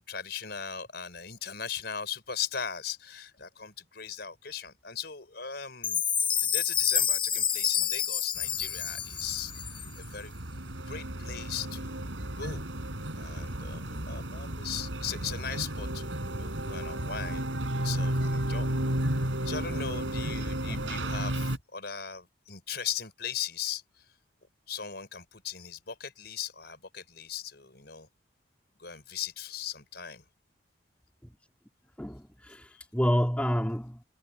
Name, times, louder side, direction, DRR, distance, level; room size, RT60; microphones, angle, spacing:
voice 1, 0.0-6.0 6.4-9.5 10.0-10.3 10.8-12.6 13.1-17.5 17.8-18.8 19.4-24.0 24.7-28.1 28.8-30.2 32.7-32.8, left 8 dB, 55° left, 5.3 m, -38 dB
Chime, 5.8-10.0, left 8 dB, 25° left, 0.7 m, -28 dB
sound 1, 8.4-21.6, right 1 dB, 80° right, 4.7 m, -33 dB
voice 2, 20.7-21.1 31.2-31.3 32.0-34.0, equal, 5° left, 2.9 m, -29 dB
head